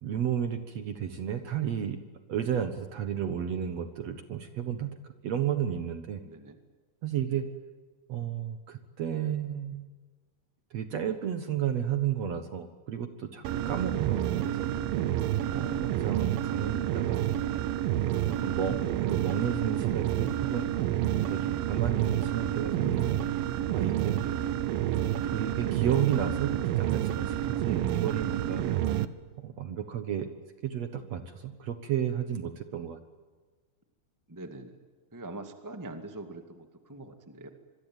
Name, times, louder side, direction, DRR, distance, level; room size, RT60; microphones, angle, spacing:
voice 1, 0.0-2.0 2.3-6.2 7.0-7.5 8.1-9.9 10.7-14.7 15.5-17.3 18.0-20.7 21.2-23.2 23.7-24.2 25.2-28.6 29.4-30.3 30.6-33.0, right 9 dB, 55° right, 9 dB, 2.1 m, -32 dB
voice 2, 6.2-6.6 7.3-7.4 24.2-24.5 34.3-34.8 35.1-37.5, right 2 dB, 10° right, 7 dB, 1.1 m, -43 dB
sound 1, 13.4-29.1, right 12 dB, 80° right, 2.7 m, -29 dB
26.5 x 23.0 x 9.2 m, 1.4 s
omnidirectional pair, 4.2 m